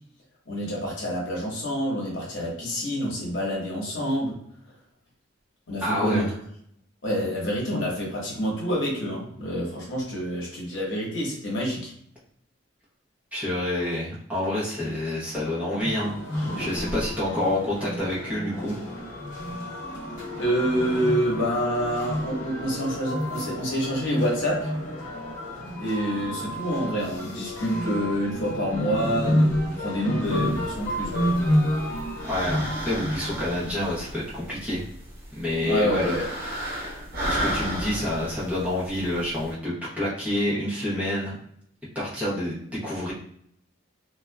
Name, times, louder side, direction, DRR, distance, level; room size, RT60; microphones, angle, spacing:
voice 1, 0.5-4.4 5.7-6.3 7.0-11.9 20.4-24.7 25.8-31.3 35.6-36.3, equal, 75° left, -4 dB, 0.9 m, -27 dB
voice 2, 5.8-6.3 13.3-16.1 16.6-18.8 32.2-34.8 35.4-36.2 37.2-41.4 41.9-43.1, left 1 dB, 10° right, -8 dB, 0.9 m, -28 dB
sound 1, 15.8-33.6, equal, 50° left, 1.1 m, -30 dB
sound 2, 30.2-39.5, equal, 55° right, 0.9 m, -35 dB
2.6 x 2.3 x 2.2 m, 0.67 s
head